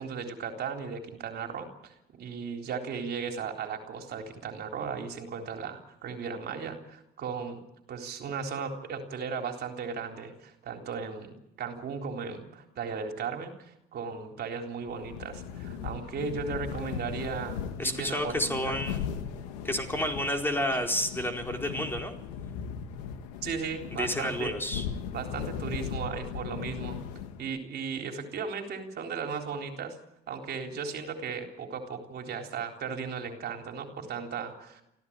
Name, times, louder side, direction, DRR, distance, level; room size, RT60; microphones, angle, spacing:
voice 1, 0.0-7.6 7.9-18.7 23.4-24.6 25.1-27.0 27.4-30.0 30.3-34.8, right 6 dB, 55° right, 3 dB, 3.8 m, -36 dB
sound 1, 14.9-27.6, left 7 dB, 90° left, 2.3 m, -38 dB
voice 2, 17.8-19.1 19.6-22.1 24.0-24.8, left 1 dB, 10° left, 3 dB, 4.4 m, -30 dB
25.0 x 16.0 x 8.8 m, 0.82 s
supercardioid pair, 85°, 20 cm